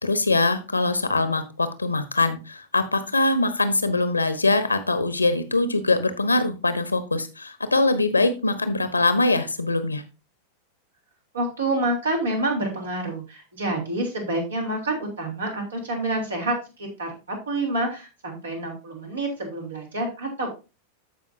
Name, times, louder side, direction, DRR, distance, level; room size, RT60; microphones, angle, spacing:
voice 1, 0.0-10.0, left 2 dB, 80° left, 11 dB, 1.0 m, -23 dB
voice 2, 11.3-20.5, right 2 dB, 70° right, 1 dB, 3.4 m, -28 dB
14.5 x 5.2 x 2.7 m, 0.30 s
figure-of-eight pair, 90°, 0 cm